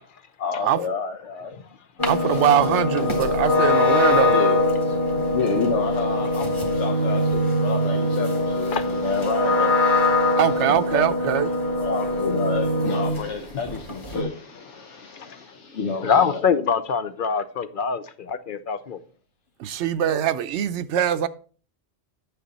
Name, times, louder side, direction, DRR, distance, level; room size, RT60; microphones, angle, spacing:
voice 1, 0.4-1.6 2.0-2.4 4.3-4.6 5.1-11.1 11.4-16.4, left 5 dB, 90° left, 1.1 m, -30 dB
sound 1, 2.0-13.3 13.7-14.2, left 1 dB, 25° left, 1.6 m, -22 dB
voice 2, 2.0-4.4 10.4-11.5 19.6-21.3, right 10 dB, 80° right, 0.9 m, -22 dB
voice 3, 16.0-19.0, left 6 dB, 55° left, 0.7 m, -24 dB
9.3 x 6.5 x 4.0 m
omnidirectional pair, 1.2 m